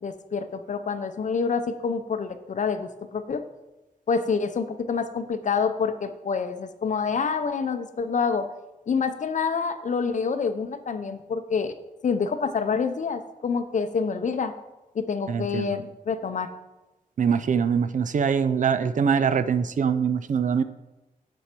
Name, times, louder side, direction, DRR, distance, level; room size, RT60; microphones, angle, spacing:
voice 1, 0.0-3.5 4.1-8.5 8.9-11.7 12.0-14.5 14.9-16.5, left 5 dB, 55° left, 10 dB, 0.6 m, -27 dB
voice 2, 15.3-15.8 17.2-20.6, right 6 dB, 55° right, 13 dB, 0.4 m, -23 dB
7.5 x 7.0 x 4.4 m, 1.0 s
wide cardioid pair, 155°, 15 cm